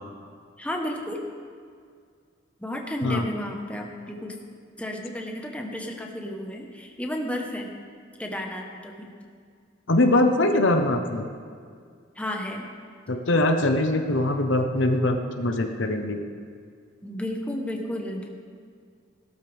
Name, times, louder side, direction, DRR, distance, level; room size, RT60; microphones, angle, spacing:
voice 1, 0.6-1.2 2.6-4.4 4.8-7.7 8.2-9.1 12.2-12.7 17.0-18.3, left 1 dB, 5° left, 1 dB, 1.1 m, -32 dB
voice 2, 9.9-11.3 13.1-16.2, left 1 dB, 70° left, 5 dB, 1.0 m, -22 dB
17.5 x 12.5 x 3.5 m, 2.1 s
head